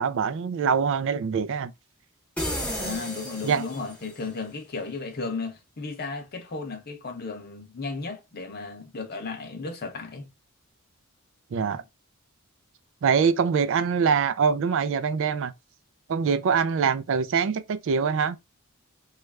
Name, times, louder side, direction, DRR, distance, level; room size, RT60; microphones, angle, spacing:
voice 1, 0.0-1.7 3.4-3.6 11.5-11.8 13.0-15.5 16.1-18.4, right 6 dB, 60° right, 0.3 m, -24 dB
sound 1, 2.4-4.2, equal, 5° left, 0.7 m, -32 dB
voice 2, 2.7-10.3, left 4 dB, 45° left, 0.7 m, -35 dB
3.1 x 2.4 x 3.2 m
head